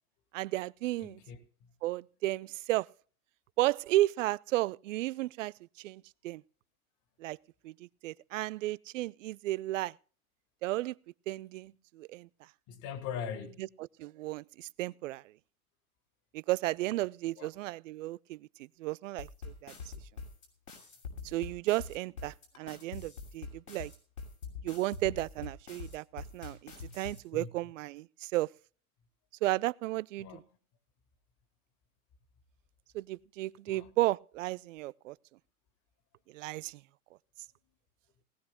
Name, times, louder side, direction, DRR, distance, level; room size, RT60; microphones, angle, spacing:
voice 1, 0.3-1.2 1.8-2.9 3.6-6.4 7.2-7.4 7.6-7.7 8.0-9.9 10.6-11.0 11.3-12.3 14.0-15.2 16.3-18.5 18.8-19.7 21.2-23.9 24.6-28.5 29.4-30.4 32.9-35.2 36.3-36.8, right 17 dB, 60° right, 0.6 m, -33 dB
voice 2, 1.0-1.4 12.7-13.7 17.4-17.5 27.3-27.5 30.2-30.4 33.7-33.9, left 7 dB, 40° left, 2.6 m, -41 dB
sound 1, 19.2-27.2, left 4 dB, 80° left, 6.5 m, -44 dB
19.5 x 17.5 x 2.2 m
hypercardioid pair, 100°, 43 cm